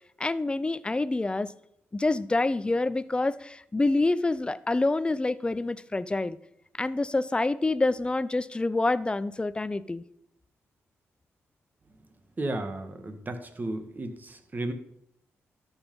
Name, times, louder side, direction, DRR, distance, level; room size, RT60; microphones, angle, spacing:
voice 1, 0.2-1.5 1.9-6.4 6.8-10.0, left 2 dB, 20° left, 16 dB, 0.5 m, -27 dB
voice 2, 12.4-14.7, right 2 dB, 35° right, 8 dB, 1.5 m, -34 dB
13.0 x 5.5 x 5.4 m, 0.76 s
cardioid pair, 70°, 5 cm